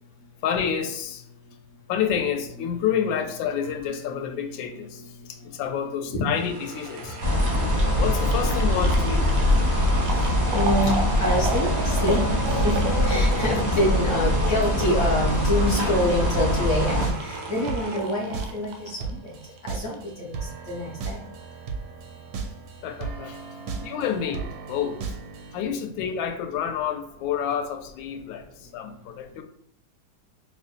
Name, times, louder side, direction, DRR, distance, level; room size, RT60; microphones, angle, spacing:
voice 1, 0.4-1.2 1.9-5.0 5.4-7.2 8.0-9.3 22.8-23.4 23.8-25.0 25.5-29.4, left 8 dB, 90° left, 6 dB, 1.3 m, -28 dB
voice 2, 4.1-4.4 6.1-6.3 10.5-10.9 11.2-12.2 12.5-19.3 19.7-20.4 20.7-21.2, left 1 dB, 65° left, -2 dB, 0.7 m, -26 dB
sound 1, 6.3-19.6 19.9-20.0, right 2 dB, 90° right, 1.3 m, -34 dB
sound 2, 7.2-17.1, left 1 dB, 45° right, 0.5 m, -23 dB
sound 3, 15.0-25.7, right 4 dB, 75° right, 0.8 m, -36 dB
5.3 x 2.1 x 2.6 m, 0.72 s
omnidirectional pair, 2.0 m